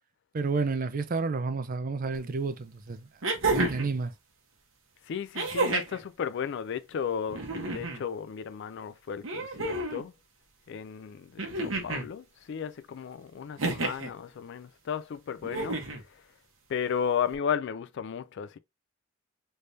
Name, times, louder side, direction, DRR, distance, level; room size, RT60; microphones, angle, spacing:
voice 1, 0.3-3.1 3.5-4.1, right 4 dB, 45° right, 0.5 m, -30 dB
sound 1, 2.1-2.2 3.2-3.9 5.3-6.0 7.3-8.0 9.2-10.0 11.4-12.1 13.6-14.1 15.4-16.0 17.3-17.4, right 2 dB, 80° right, 1.1 m, -30 dB
voice 2, 5.1-10.1 10.7-15.8 16.7-18.6, left 7 dB, 65° left, 0.4 m, -34 dB
3.3 x 3.3 x 2.6 m
head